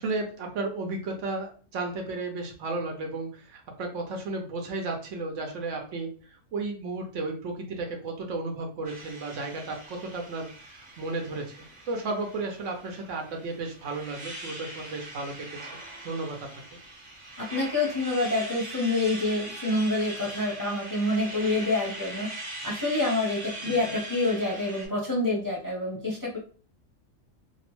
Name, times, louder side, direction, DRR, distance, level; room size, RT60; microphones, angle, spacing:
voice 1, 0.0-6.1 6.5-11.6 11.9-15.5 16.0-16.5 23.6-23.7, right 3 dB, 75° right, 2 dB, 1.0 m, -33 dB
sound 1, 8.8-24.9, right 1 dB, 45° right, 1.0 m, -41 dB
voice 2, 17.4-22.3 22.6-26.4, left 2 dB, 20° left, -4 dB, 0.6 m, -27 dB
2.9 x 2.1 x 2.9 m, 0.39 s
omnidirectional pair, 1.3 m